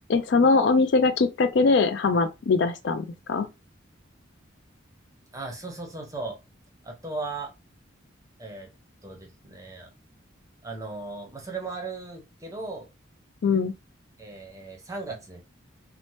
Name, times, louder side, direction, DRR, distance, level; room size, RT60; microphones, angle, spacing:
voice 1, 0.1-3.5 13.4-13.7, left 4 dB, 60° left, 0.4 m, -22 dB
voice 2, 5.3-6.4 6.8-7.5 8.4-8.7 9.0-9.9 10.6-12.9 14.2-15.4, right 3 dB, 15° right, 0.7 m, -37 dB
2.7 x 2.0 x 3.1 m
head